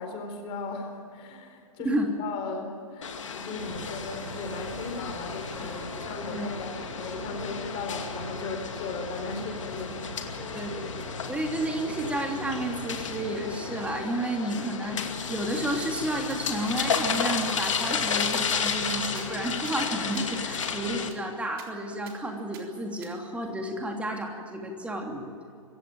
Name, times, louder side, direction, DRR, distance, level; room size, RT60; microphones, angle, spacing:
voice 1, 0.0-6.7 7.0-10.3, left 4 dB, 30° left, 5 dB, 4.3 m, -37 dB
sound 1, 3.0-21.1, left 6 dB, 60° left, 2.4 m, -33 dB
sound 2, 3.6-14.0, right 2 dB, 75° right, 3.8 m, -43 dB
voice 2, 10.4-15.0 15.3-25.3, right 1 dB, 5° right, 3 dB, 3.1 m, -31 dB
sound 3, 15.8-15.9 16.3-16.4 16.8-16.9 17.3-17.4 17.7-17.9 18.2-19.9 20.1-20.3 20.6-20.8 21.1-21.2 21.6-21.7 22.1-22.2 22.5-22.6 23.0-23.1, right 7 dB, 40° right, 3.8 m, -48 dB
25.0 x 15.5 x 9.1 m, 2.5 s
figure-of-eight pair, 110°, 18 cm